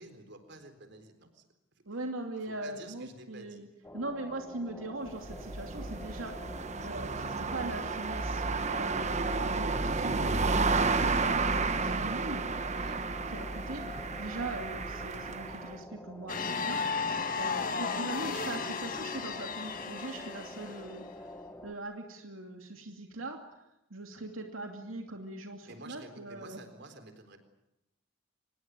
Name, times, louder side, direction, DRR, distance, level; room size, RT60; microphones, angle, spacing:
voice 1, 0.0-1.5 2.4-3.6 12.7-13.0 17.3-17.7 25.6-27.4, right 2 dB, 55° right, 8 dB, 4.0 m, -50 dB
voice 2, 1.9-3.7 3.9-6.4 6.8-12.5 13.0-21.0 21.6-23.6 23.9-26.6, right 2 dB, 90° right, 3 dB, 2.7 m, -41 dB
sound 1, 3.8-21.7, left 1 dB, 10° left, 1.4 m, -47 dB
sound 2, 5.1-15.7, right 3 dB, 35° right, 1.1 m, -31 dB
sound 3, 16.3-21.0, left 5 dB, 40° left, 1.7 m, -34 dB
25.5 x 21.0 x 9.5 m, 0.89 s
head